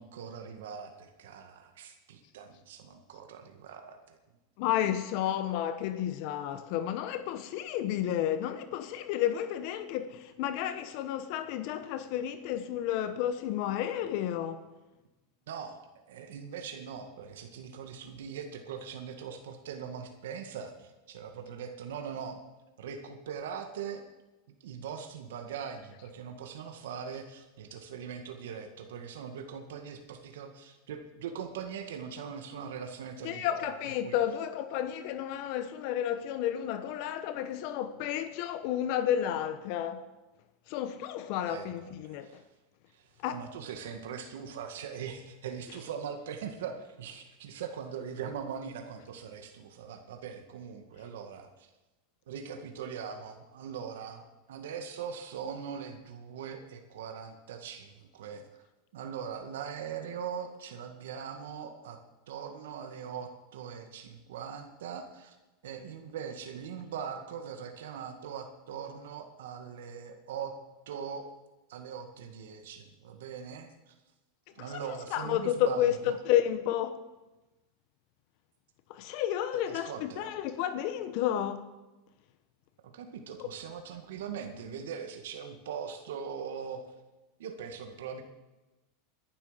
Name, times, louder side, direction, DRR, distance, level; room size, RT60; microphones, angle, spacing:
voice 1, 0.0-4.2 15.5-22.4 22.8-24.0 24.6-33.6 34.0-34.1 41.5-41.7 42.0-42.5 42.9-51.7 52.3-54.2 54.5-58.4 58.9-62.0 62.3-65.4 65.6-70.5 70.9-71.3 71.7-73.9 74.5-76.2 79.5-80.4 82.9-86.8 87.4-88.2, right 7 dB, 85° right, 5 dB, 2.0 m, -41 dB
voice 2, 4.6-14.7 33.2-40.0 40.7-42.4 43.2-43.4 45.7-45.8 74.6-77.0 78.9-81.6 83.4-83.5, left 11 dB, 55° left, 10 dB, 1.2 m, -31 dB
20.5 x 11.5 x 5.2 m, 1.1 s
supercardioid pair, 145°, 0 cm